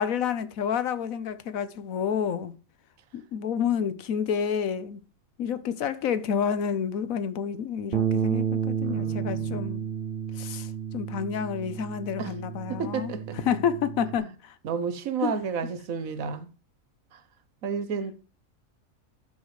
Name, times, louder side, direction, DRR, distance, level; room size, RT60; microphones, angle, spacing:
voice 1, 0.0-2.5 3.1-5.0 5.4-9.8 10.3-13.1 13.4-14.5 15.2-15.4, left 7 dB, 80° left, 1.2 m, -29 dB
Bass guitar, 7.9-14.2, right 8 dB, 55° right, 0.6 m, -31 dB
voice 2, 8.8-9.7 12.2-12.4 12.7-13.4 14.6-16.5 17.1-17.2 17.6-18.2, right 6 dB, 75° right, 1.3 m, -32 dB
13.0 x 7.2 x 3.2 m
omnidirectional pair, 1.5 m